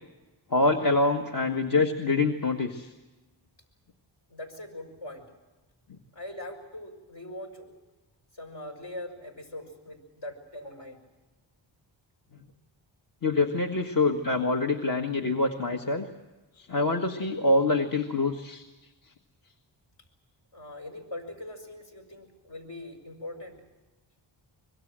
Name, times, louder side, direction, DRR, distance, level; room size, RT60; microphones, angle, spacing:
voice 1, 0.5-2.9 13.2-16.1 16.6-18.6, left 2 dB, 45° left, 4 dB, 1.7 m, -25 dB
voice 2, 4.3-5.3 6.1-7.7 8.4-11.0 20.5-23.6, left 1 dB, 60° left, 4 dB, 6.2 m, -41 dB
25.0 x 22.0 x 7.6 m, 1.1 s
cardioid pair, 95°, 46 cm